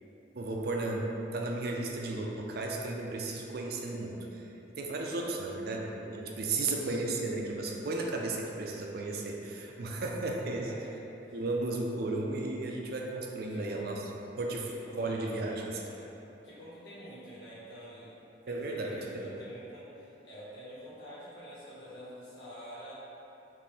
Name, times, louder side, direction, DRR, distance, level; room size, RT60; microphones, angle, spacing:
voice 1, 0.3-1.0 1.3-4.4 4.7-10.7 11.3-14.0 14.4-15.8 18.5-19.2, right 2 dB, 60° right, 0 dB, 0.5 m, -34 dB
voice 2, 6.2-6.6 10.6-11.5 13.5-13.9 14.7-16.1 16.4-18.1 18.5-22.9, equal, 80° left, -9 dB, 1.4 m, -48 dB
5.2 x 2.6 x 3.3 m, 2.9 s
head